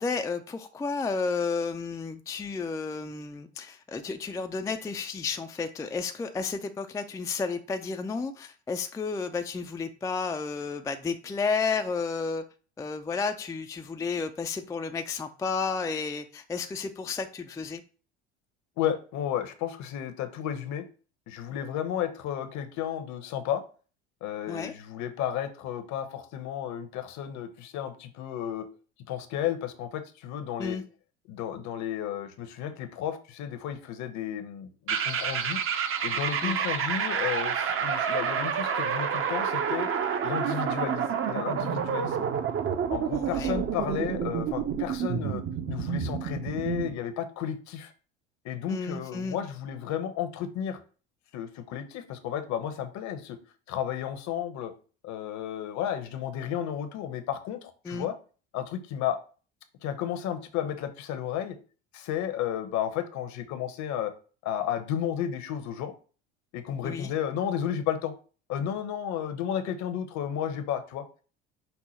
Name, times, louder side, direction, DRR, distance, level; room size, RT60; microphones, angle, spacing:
voice 1, 0.0-12.4 12.8-17.8 24.5-24.7 30.6-30.8 36.4-36.6 43.1-43.6 48.7-49.4 57.8-58.1 66.8-67.1, left 4 dB, 10° left, 6 dB, 0.4 m, -32 dB
voice 2, 18.8-20.8 21.3-23.6 24.2-28.7 29.1-30.8 31.3-35.6 36.0-39.9 40.2-42.3 42.9-47.9 48.4-50.8 51.3-53.4 53.7-54.7 55.0-58.1 58.5-59.2 59.8-61.6 61.9-64.1 64.4-65.9 66.5-68.1 68.5-71.0, left 9 dB, 55° left, 9 dB, 0.9 m, -33 dB
sound 1, 34.9-46.9, right 7 dB, 40° right, 0.7 m, -29 dB
5.5 x 2.1 x 4.3 m, 0.38 s
hypercardioid pair, 70°, 35 cm